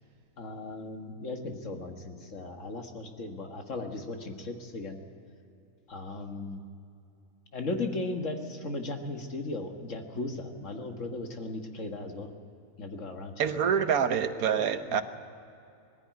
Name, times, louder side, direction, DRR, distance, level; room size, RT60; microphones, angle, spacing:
voice 1, 0.4-5.0 5.9-6.6 7.5-12.3 12.8-13.5 14.9-15.0, left 2 dB, 60° left, 4 dB, 1.9 m, -37 dB
voice 2, 13.4-15.0, right 7 dB, 85° right, 10 dB, 1.4 m, -26 dB
20.0 x 15.0 x 9.3 m, 2.7 s
omnidirectional pair, 1.5 m